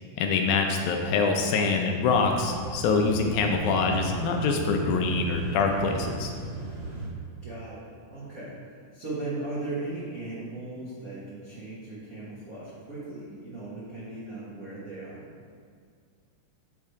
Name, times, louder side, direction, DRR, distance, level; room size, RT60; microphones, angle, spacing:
voice 1, 0.2-6.3, left 4 dB, 80° left, 3 dB, 1.9 m, -25 dB
sound 1, 2.0-7.1, right 4 dB, 40° right, 0.7 m, -35 dB
voice 2, 7.4-15.2, right 2 dB, 85° right, -9 dB, 0.7 m, -37 dB
8.5 x 3.3 x 4.6 m, 2.1 s
omnidirectional pair, 3.7 m